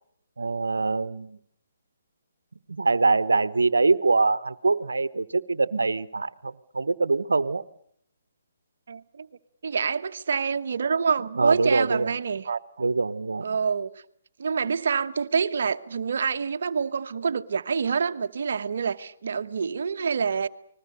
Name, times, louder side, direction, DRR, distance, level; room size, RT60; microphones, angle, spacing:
voice 1, 0.4-1.4 2.7-7.6 11.3-12.1 12.8-13.5, right 3 dB, 85° right, 1.1 m, -24 dB
voice 2, 8.9-9.3 9.6-12.9 13.4-13.9 14.4-20.5, right 6 dB, 65° right, 1.2 m, -27 dB
29.5 x 20.5 x 6.8 m
hypercardioid pair, 145°, 0 cm